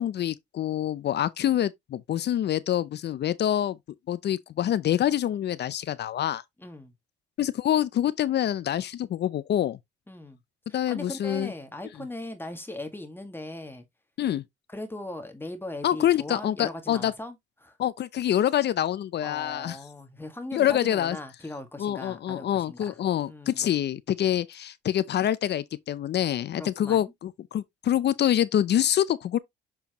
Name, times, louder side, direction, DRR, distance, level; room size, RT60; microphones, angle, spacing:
voice 1, 0.0-3.8 4.1-6.4 7.4-9.8 10.7-11.5 14.2-14.4 15.8-17.1 17.8-19.8 20.5-21.2 21.8-29.4, left 11 dB, 60° left, 0.6 m, -26 dB
voice 2, 6.6-6.9 10.1-10.4 10.7-13.9 14.7-17.8 19.2-23.0 23.3-23.7 26.5-27.1, left 1 dB, 10° left, 1.8 m, -39 dB
7.2 x 4.5 x 2.9 m
cardioid pair, 90°, 20 cm